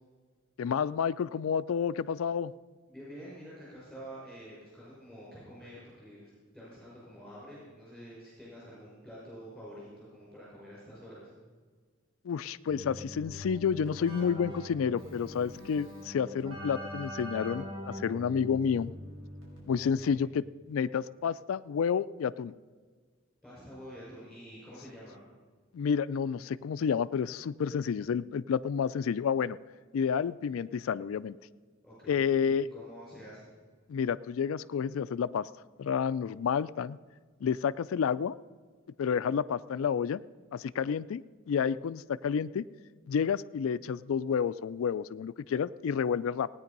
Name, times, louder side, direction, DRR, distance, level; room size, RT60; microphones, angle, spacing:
voice 1, 0.6-2.5 12.2-18.9 19.7-22.5 25.7-29.6 29.9-31.4 32.1-32.7 33.9-35.5 35.8-37.0 37.4-38.4 39.0-40.2 40.5-42.7 43.1-46.5, left 7 dB, 85° left, 16 dB, 0.4 m, -30 dB
voice 2, 2.9-11.3 20.0-20.3 23.4-25.2 31.8-33.5, equal, 5° right, -8 dB, 5.3 m, -48 dB
Keyboard (musical), 12.7-20.0, equal, 80° right, 4.7 m, -43 dB
17.5 x 9.4 x 5.3 m, 1.5 s
head